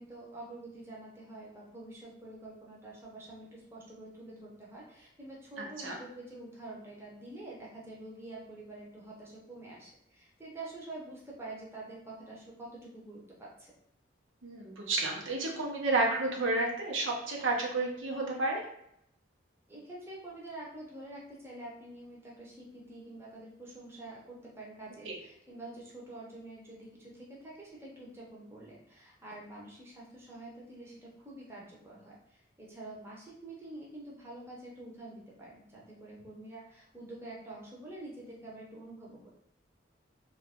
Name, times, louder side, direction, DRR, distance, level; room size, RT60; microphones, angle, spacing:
voice 1, 0.0-13.7 19.7-39.3, right 2 dB, 15° right, -4 dB, 0.7 m, -47 dB
voice 2, 14.4-18.6 25.1-25.2, right 2 dB, 85° right, -1 dB, 0.7 m, -31 dB
2.9 x 2.4 x 3.5 m, 0.75 s
head